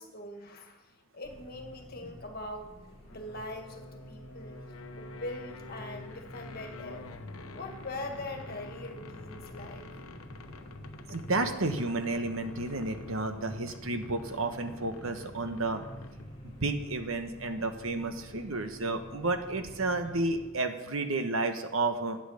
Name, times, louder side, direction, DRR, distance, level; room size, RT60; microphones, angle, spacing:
voice 1, 0.0-2.7 3.1-4.6 5.0-7.0 7.5-9.8, left 1 dB, 45° left, 4 dB, 1.9 m, -42 dB
sound 1, 1.2-20.5, equal, 30° left, 2.6 m, -49 dB
sound 2, 3.1-16.5, left 3 dB, 85° left, 1.0 m, -47 dB
voice 2, 11.1-15.8 16.4-22.2, right 2 dB, 70° right, 7 dB, 1.2 m, -31 dB
12.0 x 9.1 x 6.5 m, 1.0 s
head